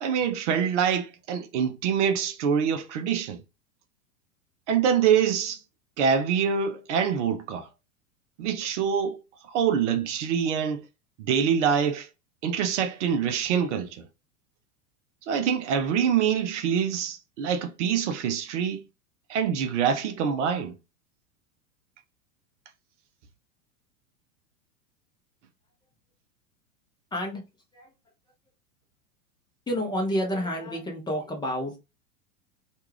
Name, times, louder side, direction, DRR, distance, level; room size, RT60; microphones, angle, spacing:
voice 1, 0.0-3.4 4.7-5.6 6.0-7.7 8.4-9.2 9.5-10.8 11.2-12.1 12.4-14.0 15.3-18.8 19.3-20.7, right 7 dB, 55° right, 0.6 m, -25 dB
voice 2, 27.1-27.4 27.7-27.9 29.7-31.8, equal, 10° left, 0.7 m, -29 dB
2.5 x 2.3 x 3.2 m
figure-of-eight pair, 95°, 43 cm